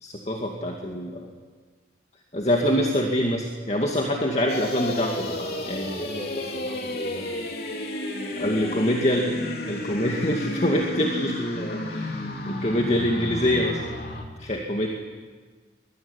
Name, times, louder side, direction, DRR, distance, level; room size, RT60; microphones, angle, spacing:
voice 1, 0.0-1.3 2.3-5.9 8.4-9.2 9.7-13.8 14.4-14.9, equal, 35° left, 0 dB, 2.3 m, -25 dB
sound 1, 4.5-14.2, left 1 dB, 55° left, 3.5 m, -32 dB
voice 2, 5.2-7.4 8.3-9.0, equal, 20° left, 3 dB, 5.1 m, -40 dB
23.5 x 22.5 x 9.9 m, 1.5 s
head